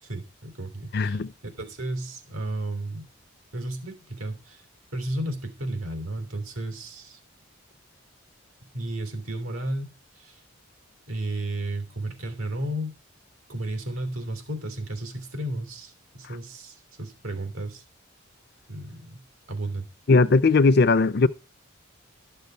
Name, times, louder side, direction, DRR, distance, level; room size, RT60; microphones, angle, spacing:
voice 1, 0.0-3.1 3.5-4.6 4.9-7.2 8.7-10.4 11.1-12.9 13.5-17.8 18.7-19.2 19.5-19.9, right 1 dB, 90° right, 3.1 m, -33 dB
voice 2, 0.9-1.3 20.1-21.3, left 3 dB, 50° left, 0.5 m, -18 dB
12.0 x 6.6 x 5.7 m
head